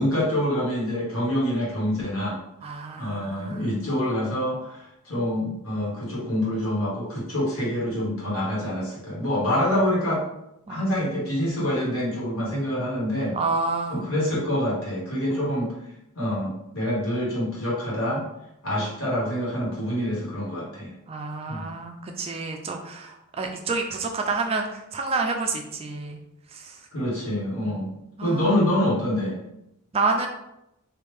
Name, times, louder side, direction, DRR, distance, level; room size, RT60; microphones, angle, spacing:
voice 1, 0.0-2.4 3.0-10.2 10.7-13.4 13.9-15.7 16.1-18.3 18.6-20.9 21.5-21.7 26.9-27.9 28.2-29.4, left 1 dB, 65° left, -5 dB, 1.5 m, -26 dB
voice 2, 2.6-3.7 10.7-10.9 13.3-14.0 15.3-15.5 21.1-26.2 26.5-26.8 27.6-27.8 28.2-28.5 29.9-30.3, right 3 dB, 25° right, 3 dB, 0.3 m, -29 dB
3.3 x 2.6 x 3.3 m, 0.84 s
head